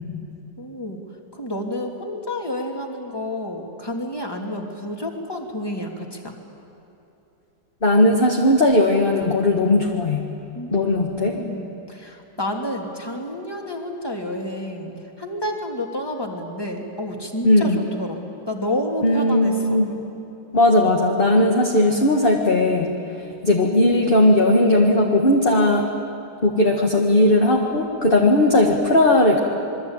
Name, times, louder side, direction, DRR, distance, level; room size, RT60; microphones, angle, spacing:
voice 1, 0.6-1.0 1.3-6.3 10.5-19.9, left 1 dB, 10° left, 1 dB, 2.7 m, -30 dB
voice 2, 7.8-10.3 10.7-11.3 17.4-17.8 19.0-19.9 20.5-22.9 23.4-25.9 26.4-29.4, left 1 dB, 30° left, 0 dB, 1.8 m, -17 dB
27.0 x 22.5 x 9.0 m, 3.0 s
omnidirectional pair, 2.0 m